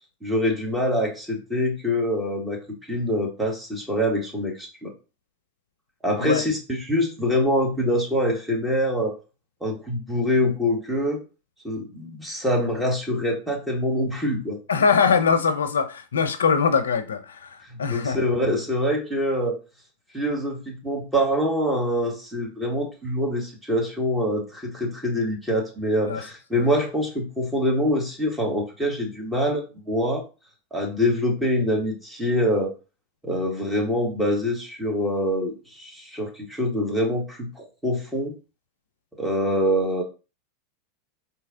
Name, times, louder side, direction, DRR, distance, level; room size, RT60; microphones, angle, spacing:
voice 1, 0.2-2.6 2.9-4.9 6.0-9.2 9.6-11.2 11.6-14.6 17.7-19.6 20.1-30.2 30.7-32.8 33.2-38.3 39.2-40.0, equal, 10° right, 1.7 m, -25 dB
voice 2, 14.7-18.2 26.0-26.3 26.5-26.6, left 6 dB, 80° left, 0.5 m, -22 dB
4.2 x 2.9 x 3.7 m
hypercardioid pair, 90°, 0 cm